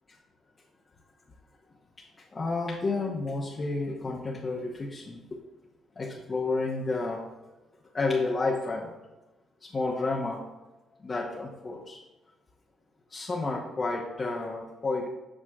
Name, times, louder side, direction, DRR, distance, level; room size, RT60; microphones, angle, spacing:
voice 1, 2.3-5.2 6.0-7.2 7.9-8.9 9.6-10.4 11.0-12.0 13.1-15.1, left 3 dB, 35° left, -3 dB, 1.0 m, -30 dB
8.7 x 6.1 x 2.4 m, 1.1 s
cardioid pair, 90°, 0 cm